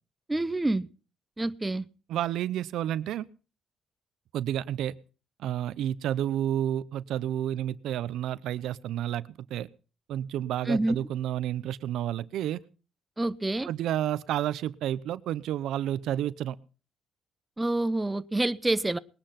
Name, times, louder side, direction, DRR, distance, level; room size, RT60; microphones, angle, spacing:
voice 1, 0.3-0.9 1.4-1.8 10.7-11.0 13.2-13.7 17.6-19.0, right 2 dB, 15° right, 0.8 m, -27 dB
voice 2, 2.1-3.3 4.3-4.9 5.4-9.7 10.1-12.6 13.7-16.6, right 11 dB, 85° right, 0.7 m, -30 dB
20.5 x 10.5 x 5.9 m
cardioid pair, 90°, 0 cm